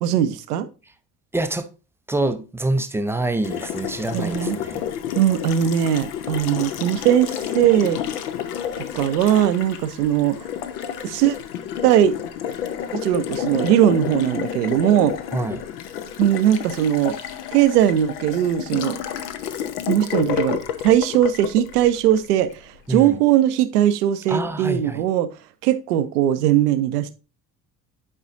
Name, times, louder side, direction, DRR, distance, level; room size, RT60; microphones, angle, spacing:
voice 1, 0.0-0.7 4.1-4.6 5.1-8.0 8.9-10.4 11.0-11.4 11.8-12.1 12.9-15.2 16.2-17.2 17.5-19.0 19.9-22.5 22.9-25.3 25.6-27.1, right 11 dB, 70° right, 0.7 m, -19 dB
voice 2, 1.3-1.7 2.1-4.8 15.3-15.6 22.9-23.2 24.3-25.0, right 2 dB, 5° right, 0.5 m, -26 dB
Water tap faucet, 3.4-22.6, left 9 dB, 65° left, 0.8 m, -30 dB
9.7 x 4.9 x 2.6 m
figure-of-eight pair, 55°, 49 cm